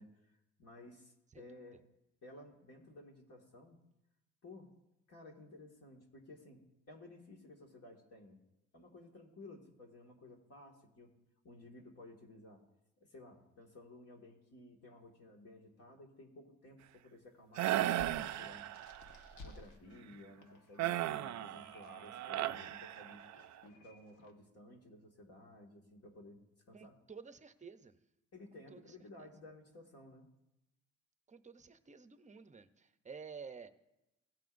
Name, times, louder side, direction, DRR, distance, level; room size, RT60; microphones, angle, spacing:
voice 1, 0.0-1.8 2.2-3.8 4.4-4.7 5.1-6.6 6.9-8.4 8.7-11.1 11.4-12.6 13.0-18.7 19.4-23.2 23.6-26.4 26.7-26.9 28.3-30.3, left 2 dB, 55° left, 0 dB, 1.9 m, -55 dB
voice 2, 1.3-1.6 26.7-28.0 28.5-29.3 31.3-33.7, right 5 dB, 25° right, 10 dB, 0.7 m, -52 dB
sound 1, 17.6-24.3, left 2 dB, 80° left, 1.4 m, -58 dB
sound 2, 17.6-19.1 20.8-23.4, right 13 dB, 65° right, 0.5 m, -36 dB
16.5 x 9.1 x 2.6 m, 0.89 s
cardioid pair, 90°, 30 cm